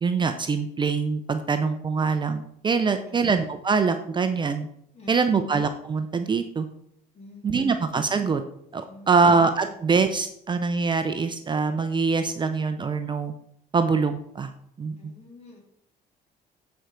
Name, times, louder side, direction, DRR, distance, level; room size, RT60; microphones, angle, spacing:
voice 1, 0.0-4.7 5.1-6.7 7.4-8.4 8.7-13.3 13.7-14.5 14.8-15.1, right 4 dB, 25° right, 8 dB, 0.6 m, -24 dB
voice 2, 4.9-5.4 7.1-7.5 8.9-9.3 9.6-9.8 15.0-15.6, left 2 dB, 40° left, -1 dB, 3.3 m, -47 dB
9.0 x 4.6 x 5.0 m, 0.70 s
cardioid pair, 110°, 17 cm